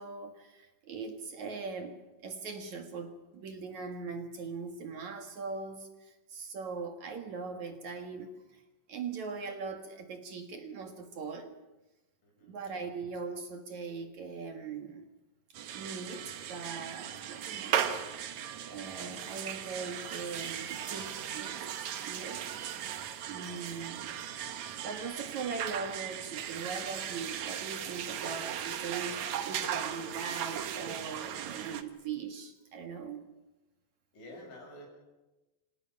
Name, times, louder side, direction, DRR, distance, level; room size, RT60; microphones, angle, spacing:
voice 1, 0.0-8.6 8.9-11.6 12.4-15.1 15.7-18.1 18.7-21.7 22.0-22.5 23.3-24.1 24.7-33.2, right 5 dB, 55° right, 5 dB, 2.3 m, -40 dB
voice 2, 12.2-12.6 34.1-34.9, left 1 dB, 85° left, 0 dB, 9.9 m, -49 dB
sound 1, 15.5-31.8, right 9 dB, 85° right, 1.6 m, -37 dB
29.5 x 26.0 x 5.9 m, 1.1 s
omnidirectional pair, 5.3 m